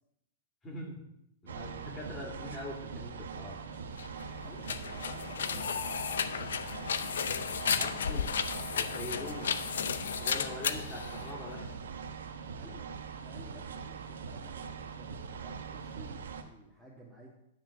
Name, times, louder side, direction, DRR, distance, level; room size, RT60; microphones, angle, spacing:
voice 1, 0.6-1.0 1.4-3.6 7.6-8.3 8.7-9.5 10.2-11.7, left 2 dB, 20° left, -1 dB, 2.7 m, -43 dB
sound 1, 1.5-16.4, right 6 dB, 85° right, 0.9 m, -42 dB
sound 2, 3.9-11.8, left 7 dB, 85° left, 0.6 m, -34 dB
voice 2, 4.4-6.5 12.5-12.9 13.2-17.3, right 1 dB, ahead, -5 dB, 1.8 m, -54 dB
9.6 x 4.4 x 6.2 m, 0.80 s
hypercardioid pair, 130°, 0 cm